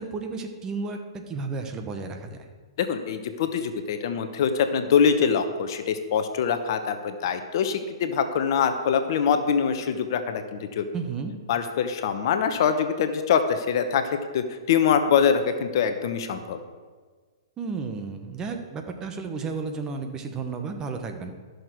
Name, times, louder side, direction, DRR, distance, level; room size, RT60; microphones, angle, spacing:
voice 1, 0.0-2.5 10.9-11.3 17.6-21.3, right 4 dB, 20° right, 5 dB, 1.1 m, -33 dB
voice 2, 2.8-10.9 11.5-14.0 14.3-16.6, left 7 dB, 55° left, 8 dB, 0.9 m, -24 dB
13.0 x 6.5 x 4.6 m, 1.5 s
hypercardioid pair, 125°, 3 cm